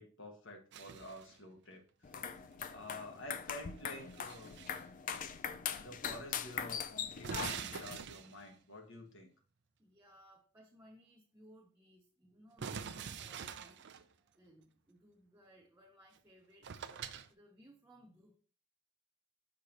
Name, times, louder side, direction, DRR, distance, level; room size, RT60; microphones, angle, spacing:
voice 1, 0.0-2.2 2.7-4.5 5.8-9.3, left 1 dB, 60° left, 4 dB, 1.3 m, -50 dB
sound 1, 0.7-1.4 3.7-4.8 5.7-6.2 6.5-6.6 7.2-8.6 12.6-14.0 16.2-16.3 16.6-17.3, right 7 dB, 55° right, 0.5 m, -45 dB
sound 2, 2.0-8.0, left 7 dB, 35° left, 0.4 m, -42 dB
voice 2, 9.8-18.4, equal, 10° right, -1 dB, 0.7 m, -63 dB
6.5 x 5.1 x 2.8 m, 0.39 s
head